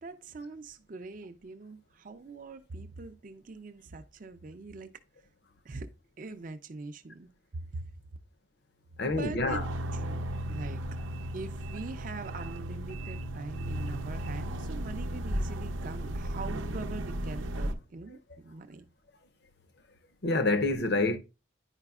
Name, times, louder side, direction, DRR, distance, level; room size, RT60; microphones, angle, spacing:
voice 1, 0.0-4.9 5.6-5.9 6.2-7.8 9.0-9.6 9.9-10.2 10.5-10.8 11.3-18.9, right 3 dB, 45° right, 0.5 m, -42 dB
voice 2, 9.0-9.6 20.2-21.2, left 2 dB, 55° left, 0.7 m, -27 dB
sound 1, 9.5-17.7, right 1 dB, 85° right, 0.7 m, -35 dB
9.8 x 4.8 x 2.4 m
head